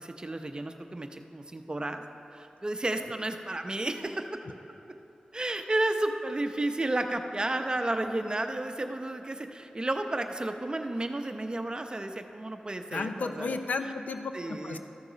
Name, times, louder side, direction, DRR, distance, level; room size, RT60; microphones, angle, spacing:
voice 1, 0.0-2.0 2.3-4.3 5.3-13.6 14.3-14.8, right 2 dB, 35° right, 6 dB, 0.7 m, -32 dB
voice 2, 12.9-14.8, left 4 dB, 80° left, 8 dB, 0.6 m, -33 dB
13.5 x 6.6 x 5.1 m, 2.9 s
cardioid pair, 50°, 3 cm